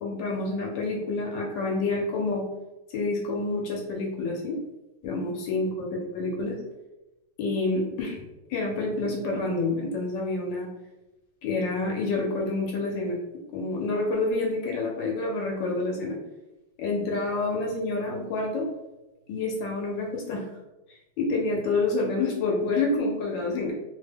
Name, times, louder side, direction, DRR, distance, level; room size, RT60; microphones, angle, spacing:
voice 1, 0.0-2.4 2.9-4.6 5.0-5.9 6.1-6.6 7.4-8.2 8.5-10.7 11.4-13.2 13.5-16.2 16.8-18.7 19.3-20.5 20.9-23.7, left 3 dB, 70° left, -1 dB, 1.2 m, -28 dB
3.4 x 2.2 x 3.3 m, 0.99 s
omnidirectional pair, 2.3 m